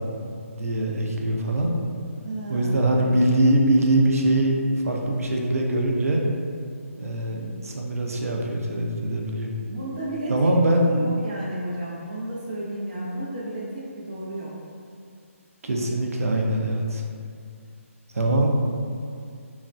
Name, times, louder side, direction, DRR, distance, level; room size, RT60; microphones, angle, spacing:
voice 1, 0.3-1.7 2.5-4.6 4.8-6.2 7.0-9.5 10.3-10.9 15.6-17.0 18.1-18.5, right 1 dB, 80° right, 0 dB, 0.5 m, -22 dB
voice 2, 2.2-3.1 9.6-10.5 10.8-14.5, right 1 dB, 30° right, -6 dB, 0.5 m, -32 dB
3.2 x 2.1 x 2.5 m, 2.3 s
hypercardioid pair, 170°, 8 cm